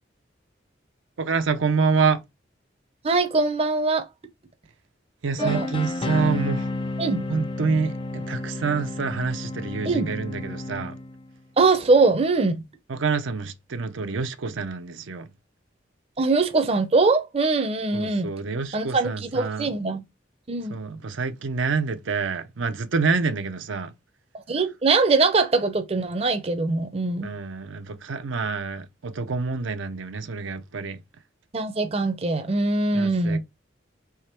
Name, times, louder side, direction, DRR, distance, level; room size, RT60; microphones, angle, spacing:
voice 1, 1.2-2.2 5.2-6.7 7.3-10.9 12.9-15.3 17.9-19.7 20.7-23.9 27.2-31.0 32.9-33.4, right 4 dB, 85° right, 0.6 m, -27 dB
voice 2, 3.0-4.1 5.4-5.7 7.0-7.2 9.9-10.1 11.6-12.6 16.2-18.3 18.7-20.0 20.5-20.8 24.5-27.3 31.5-33.4, right 3 dB, 30° right, 0.5 m, -22 dB
sound 1, 5.4-11.3, left 2 dB, 30° left, 0.4 m, -31 dB
3.5 x 3.2 x 4.3 m
head